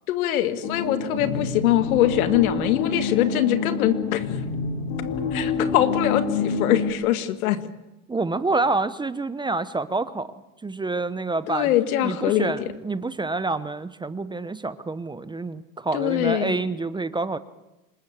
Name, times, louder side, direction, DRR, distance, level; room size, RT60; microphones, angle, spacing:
voice 1, 0.1-4.2 5.3-7.6 11.5-12.5 15.9-16.6, left 12 dB, 80° left, 9 dB, 2.2 m, -23 dB
sound 1, 0.6-6.9, left 5 dB, 60° left, 4.3 m, -27 dB
voice 2, 8.1-10.3 10.6-11.7 12.0-17.4, right 3 dB, 10° right, 14 dB, 0.8 m, -27 dB
26.5 x 20.5 x 7.4 m, 0.98 s
supercardioid pair, 110°, 42 cm